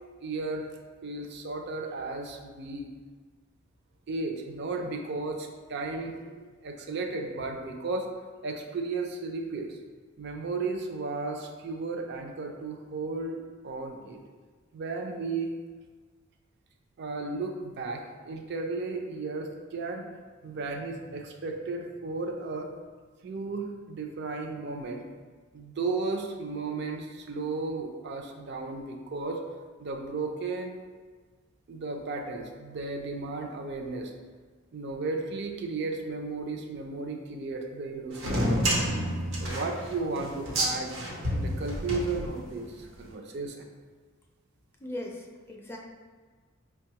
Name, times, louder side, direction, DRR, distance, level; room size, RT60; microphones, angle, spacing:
voice 1, 0.2-0.7 1.0-2.9 4.1-8.1 8.4-9.8 10.2-13.4 13.6-14.2 14.7-15.5 17.0-20.0 20.4-22.7 23.2-25.0 25.5-29.4 29.8-30.8 31.7-34.1 34.7-38.9 39.4-40.9 41.3-43.7, right 3 dB, 60° right, 3 dB, 0.4 m, -34 dB
sound 1, 38.1-42.7, equal, 85° right, 0.9 m, -29 dB
voice 2, 44.8-45.8, left 1 dB, 10° left, -1 dB, 0.4 m, -38 dB
5.2 x 2.3 x 2.8 m, 1.5 s
head